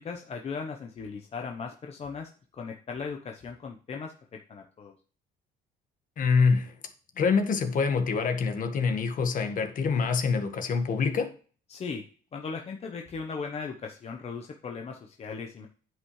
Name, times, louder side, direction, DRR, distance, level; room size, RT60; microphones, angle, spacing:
voice 1, 0.0-4.9 11.7-12.0 12.3-15.7, left 5 dB, 35° left, 1.0 m, -38 dB
voice 2, 6.2-6.7 7.2-11.3, left 5 dB, 50° left, 1.6 m, -25 dB
9.4 x 8.3 x 3.2 m
cardioid pair, 110°, 17 cm